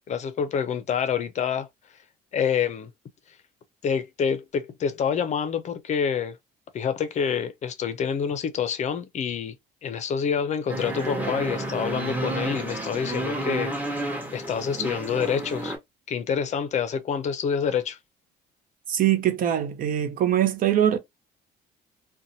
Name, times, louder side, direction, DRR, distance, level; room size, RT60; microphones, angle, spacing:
voice 1, 0.1-1.7 2.3-2.9 3.8-6.4 6.7-9.5 9.8-13.7 14.3-15.7 16.1-18.0, left 7 dB, 45° left, 0.5 m, -27 dB
sound 1, 10.7-15.8, right 1 dB, 10° right, 0.9 m, -31 dB
voice 2, 18.9-21.0, right 11 dB, 55° right, 0.6 m, -22 dB
2.6 x 2.2 x 2.6 m
cardioid pair, 110°, 17 cm